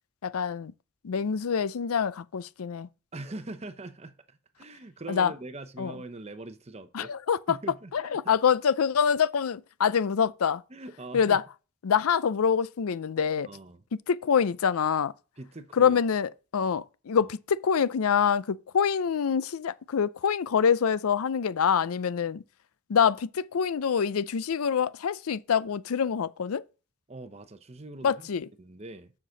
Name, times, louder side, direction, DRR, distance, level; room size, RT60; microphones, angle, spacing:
voice 1, 0.2-0.7 1.0-2.9 5.1-5.3 5.8-5.9 6.9-7.6 7.9-10.6 11.1-11.4 11.8-13.5 14.1-15.1 15.8-22.4 22.9-26.6 28.0-28.5, left 7 dB, 85° left, 0.5 m, -25 dB
voice 2, 3.1-7.1 7.5-8.4 10.7-11.4 13.4-13.8 15.4-16.0 17.2-17.3 27.1-28.3 28.6-29.1, right 2 dB, 30° right, 0.7 m, -42 dB
7.5 x 5.9 x 6.4 m
head